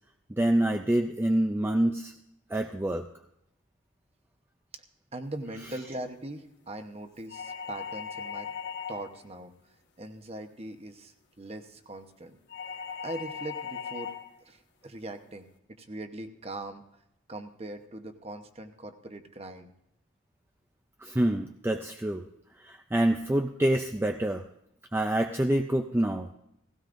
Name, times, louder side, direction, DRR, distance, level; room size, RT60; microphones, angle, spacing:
voice 1, 0.3-2.1 2.5-3.0 21.0-22.2 22.6-24.4 24.9-26.3, right 1 dB, 10° right, 4 dB, 0.4 m, -26 dB
voice 2, 5.1-8.5 8.9-9.5 10.0-12.4 13.0-14.1 14.5-15.5 15.8-16.8 17.3-19.7, right 1 dB, 30° right, 7 dB, 0.9 m, -40 dB
sound 1, 7.3-9.2 12.5-14.3, left 7 dB, 60° left, 1.3 m, -38 dB
17.0 x 16.5 x 2.6 m, 0.78 s
head